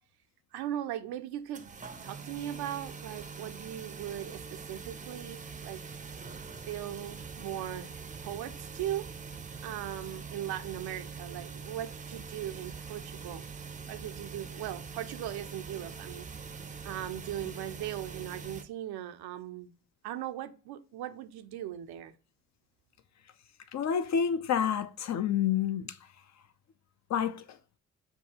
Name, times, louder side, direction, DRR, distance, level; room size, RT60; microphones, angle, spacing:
voice 1, 0.5-1.6 2.0-5.8 6.5-7.9 8.2-9.1 9.6-13.4 13.9-16.3 16.8-19.7 20.0-22.1, right 12 dB, 65° right, 0.6 m, -39 dB
sound 1, 1.5-18.6, right 5 dB, 20° right, 0.5 m, -43 dB
voice 2, 23.7-26.0 27.1-27.6, left 8 dB, 45° left, 0.5 m, -29 dB
6.7 x 2.3 x 2.8 m
hypercardioid pair, 45°, 41 cm